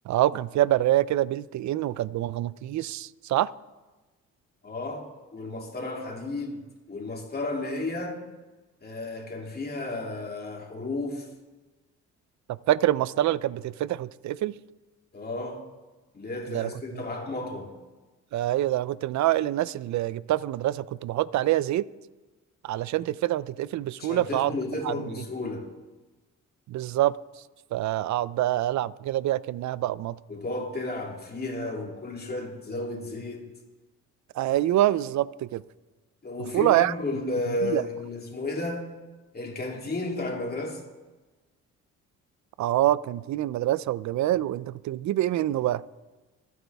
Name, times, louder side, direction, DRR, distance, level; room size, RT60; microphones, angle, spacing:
voice 1, 0.1-3.5 12.7-14.5 16.5-17.0 18.3-21.9 22.6-24.5 24.8-24.9 26.7-27.1 27.7-30.2 34.4-35.6 36.5-36.9 37.6-37.8 42.6-45.8, right 14 dB, 70° right, 0.6 m, -26 dB
voice 2, 4.6-6.6 6.9-8.2 8.8-11.3 15.1-15.7 16.1-17.7 24.0-25.7 30.3-33.5 36.2-38.9 39.3-40.8, left 2 dB, 30° left, 3.0 m, -33 dB
26.0 x 9.4 x 3.5 m
cardioid pair, 90°, 30 cm